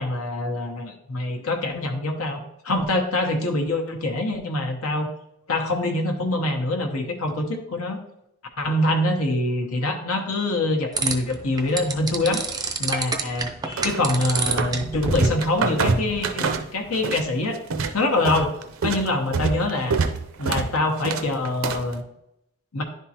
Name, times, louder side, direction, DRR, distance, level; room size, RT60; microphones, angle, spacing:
voice 1, 0.0-5.1 5.5-8.0 8.6-12.4 12.8-17.6 17.9-18.5 18.8-20.0 20.4-22.0 22.7-22.8, left 2 dB, 75° left, 2 dB, 1.0 m, -25 dB
sound 1, 11.0-16.6, right 4 dB, 20° right, 0.4 m, -30 dB
sound 2, 13.8-14.8 15.0-17.3 17.5-21.9, right 4 dB, 65° right, 0.5 m, -25 dB
10.5 x 3.6 x 2.8 m, 0.82 s
head